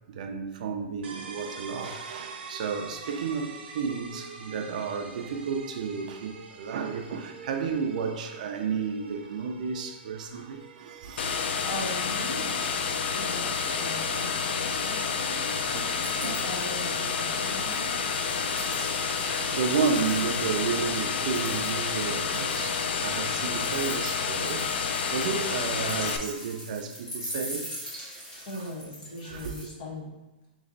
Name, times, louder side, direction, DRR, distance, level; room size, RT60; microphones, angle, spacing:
voice 1, 0.1-11.7 12.9-13.2 13.6-14.2 14.7-15.1 15.5-15.9 16.2-16.4 17.4-17.7 18.2-18.8 19.1-27.7 28.4-28.7 29.2-29.6, right 5 dB, 45° right, 0.5 m, -33 dB
sound 1, 1.0-16.6, right 4 dB, 90° right, 0.6 m, -46 dB
sound 2, 11.2-26.2, left 6 dB, 90° left, 0.4 m, -29 dB
voice 2, 11.6-12.5 13.1-15.4 16.2-18.0 28.4-30.1, equal, 50° left, 1.4 m, -39 dB
sound 3, 12.0-12.6 12.9-14.0 14.3-20.6 21.0-29.6, equal, 10° left, 0.7 m, -43 dB
3.3 x 3.1 x 3.9 m
supercardioid pair, 180°, 6 cm